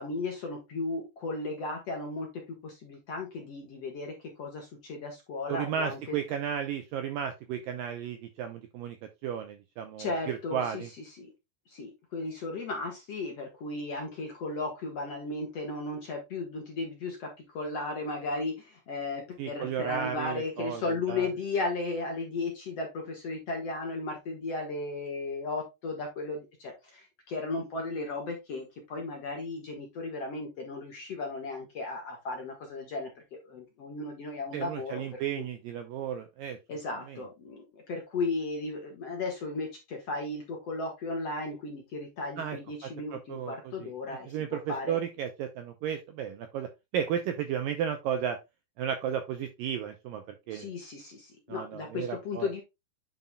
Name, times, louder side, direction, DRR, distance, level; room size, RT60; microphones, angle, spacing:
voice 1, 0.0-6.2 10.0-10.8 11.2-11.3 11.7-35.5 36.7-44.3 44.7-45.0 50.5-52.6, left 3 dB, 50° left, 2 dB, 2.0 m, -35 dB
voice 2, 5.5-9.0 9.2-10.9 19.4-20.8 21.1-21.3 34.5-36.6 37.1-37.2 42.4-48.4 48.8-50.7 51.5-52.5, right 8 dB, 75° right, 7 dB, 2.1 m, -34 dB
9.2 x 6.0 x 2.3 m, 0.23 s
omnidirectional pair, 4.8 m